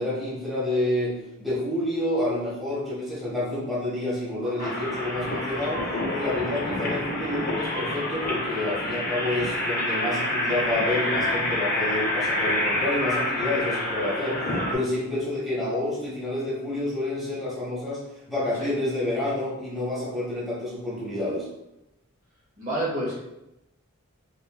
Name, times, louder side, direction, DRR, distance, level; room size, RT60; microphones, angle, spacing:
voice 1, 0.0-5.8 6.1-18.0 18.3-21.5, left 1 dB, ahead, -9 dB, 1.0 m, -28 dB
voice 2, 4.4-4.7 18.6-18.7 22.6-23.1, right 1 dB, 35° right, -7 dB, 0.8 m, -29 dB
sound 1, 4.6-14.7, left 1 dB, 40° left, 0.6 m, -27 dB
2.9 x 2.8 x 2.2 m, 0.91 s
head